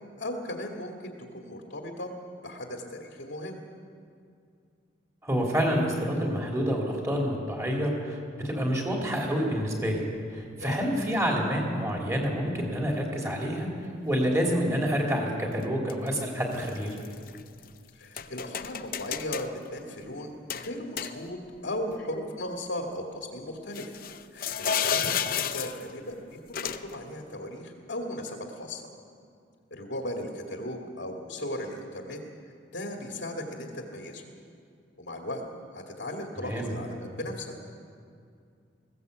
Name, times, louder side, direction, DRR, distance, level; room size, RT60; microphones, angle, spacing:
voice 1, 0.2-2.1 2.4-3.6 10.6-10.9 17.9-23.9 24.3-28.9 29.7-32.2 32.7-34.3 35.0-35.4 35.7-37.5, left 1 dB, 75° left, 1 dB, 2.2 m, -37 dB
voice 2, 5.2-10.0 10.3-13.7 14.0-17.0 36.4-36.7, equal, 15° right, -1 dB, 3.1 m, -28 dB
sound 1, 10.0-10.1 11.1-11.2 12.1-12.4 15.6-16.1 16.5-17.7 18.2-19.5 20.5-21.6 21.9-22.0 23.7-25.9 26.5-27.0, left 7 dB, 50° left, 0.7 m, -32 dB
19.5 x 16.5 x 8.1 m, 2.4 s
head